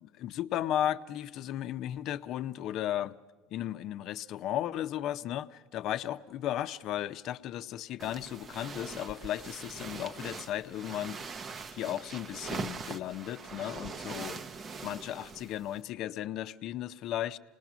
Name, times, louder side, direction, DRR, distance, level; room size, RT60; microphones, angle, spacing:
voice 1, 0.0-3.2 3.5-11.2 11.7-14.4 14.8-17.4, left 12 dB, 55° left, 0.6 m, -35 dB
sound 1, 8.0-15.8, right 5 dB, 30° right, 0.7 m, -42 dB
26.0 x 19.5 x 6.1 m
supercardioid pair, 105°, 0 cm